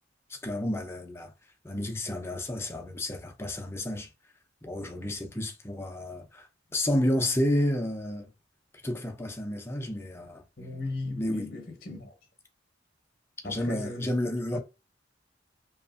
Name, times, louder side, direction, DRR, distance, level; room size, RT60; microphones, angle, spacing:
voice 1, 0.3-1.3 1.6-4.1 4.6-8.3 8.8-10.4 11.1-11.5 13.4-14.6, left 1 dB, 15° left, 0.5 m, -31 dB
voice 2, 10.6-12.1 13.4-14.1 14.5-14.6, left 2 dB, 50° left, 0.8 m, -37 dB
2.8 x 2.4 x 2.5 m
head